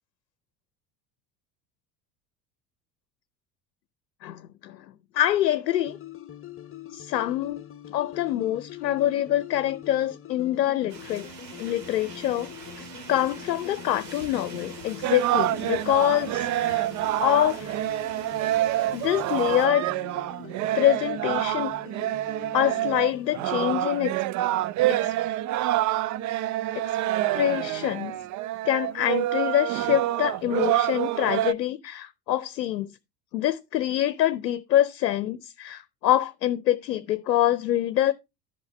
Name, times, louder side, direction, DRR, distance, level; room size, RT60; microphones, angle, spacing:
voice 1, 4.2-4.8 5.1-6.0 6.9-7.6 7.9-11.3 11.6-12.5 13.1-16.9 17.2-17.8 18.9-19.9 20.7-21.7 22.5-24.1 24.9-25.1 26.7-27.0 27.3-28.2 28.6-32.9 33.3-38.1, left 13 dB, 80° left, 0.7 m, -25 dB
sound 1, 5.7-23.8, left 8 dB, 25° left, 1.0 m, -44 dB
sound 2, 10.9-19.7, right 5 dB, 85° right, 2.3 m, -45 dB
sound 3, 15.0-31.5, right 14 dB, 40° right, 0.5 m, -27 dB
11.5 x 5.6 x 4.3 m
hypercardioid pair, 70°, 49 cm